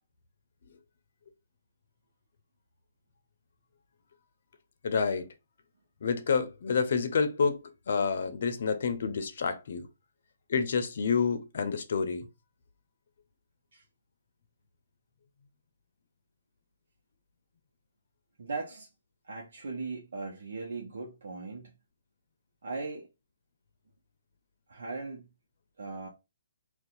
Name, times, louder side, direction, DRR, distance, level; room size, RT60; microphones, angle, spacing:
voice 1, 4.8-5.3 6.0-9.9 10.5-12.3, left 5 dB, 60° left, 0.6 m, -28 dB
voice 2, 18.4-18.9 19.2-21.7 22.6-23.1 24.7-25.2 25.8-26.1, right 3 dB, 70° right, 0.8 m, -38 dB
2.7 x 2.3 x 3.9 m
hypercardioid pair, 155°, 0 cm